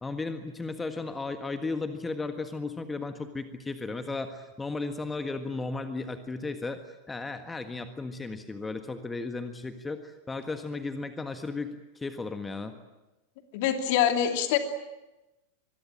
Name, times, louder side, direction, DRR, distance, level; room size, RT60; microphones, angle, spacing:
voice 1, 0.0-12.7, left 3 dB, 10° left, 8 dB, 1.6 m, -35 dB
voice 2, 13.5-14.6, left 10 dB, 50° left, 6 dB, 2.8 m, -24 dB
25.5 x 22.0 x 8.9 m, 1.0 s
figure-of-eight pair, 90°, 0 cm